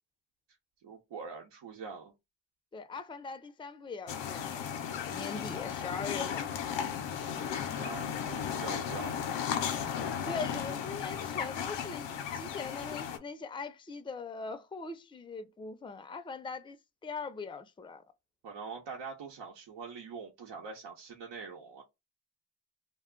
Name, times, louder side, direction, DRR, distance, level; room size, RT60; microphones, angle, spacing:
voice 1, 0.8-2.1 7.3-9.3 18.4-21.8, right 5 dB, 80° right, 0.8 m, -44 dB
voice 2, 2.7-6.5 10.2-16.8 17.0-18.0, left 4 dB, 10° left, 0.5 m, -41 dB
sound 1, 4.1-13.2, left 8 dB, 85° left, 0.6 m, -35 dB
2.3 x 2.3 x 3.7 m
supercardioid pair, 50°, 42 cm